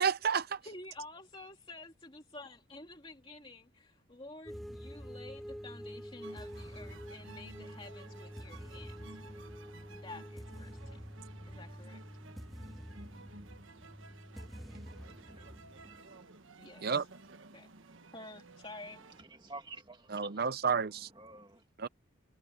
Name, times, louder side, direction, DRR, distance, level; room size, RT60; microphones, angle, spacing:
voice 1, 0.0-0.6 16.8-17.1 20.1-21.1 21.8-21.9, right 6 dB, 45° right, 0.6 m, -30 dB
voice 2, 0.6-9.2 9.9-11.0 11.5-12.0 16.6-17.0 17.5-17.7 18.1-19.0, left 2 dB, 25° left, 2.6 m, -50 dB
sound 1, 4.5-16.0, equal, ahead, 1.6 m, -47 dB
sound 2, 6.2-19.2, right 3 dB, 70° right, 1.3 m, -55 dB
voice 3, 14.9-16.3 19.2-20.5 21.2-21.9, right 3 dB, 20° right, 2.1 m, -51 dB
head